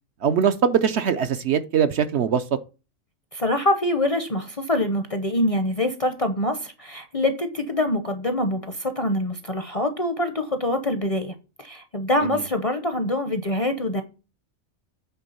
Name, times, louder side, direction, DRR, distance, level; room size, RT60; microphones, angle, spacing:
voice 1, 0.2-2.4 12.3-12.4, right 7 dB, 65° right, 0.8 m, -21 dB
voice 2, 3.3-14.0, left 1 dB, 35° left, 0.6 m, -25 dB
8.3 x 3.5 x 5.4 m
omnidirectional pair, 1.4 m